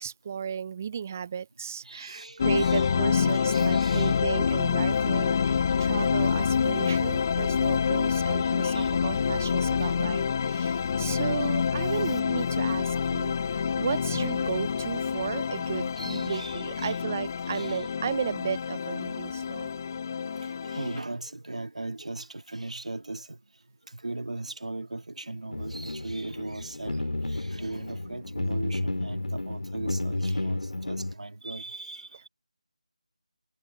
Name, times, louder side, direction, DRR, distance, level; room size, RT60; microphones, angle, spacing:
voice 1, 0.0-19.7, right 7 dB, 20° right, 0.3 m, -34 dB
voice 2, 1.8-4.2 4.6-4.7 8.3-10.1 11.4-11.5 11.8-12.2 13.4-13.5 16.0-17.0 17.5-17.9 20.3-23.4 24.0-27.0 27.3-32.3, right 2 dB, 65° right, 2.1 m, -39 dB
sound 1, 2.4-21.0, left 6 dB, 25° left, 0.6 m, -27 dB
sound 2, 25.5-31.1, left 2 dB, 70° left, 1.9 m, -32 dB
figure-of-eight pair, 165°, 4 cm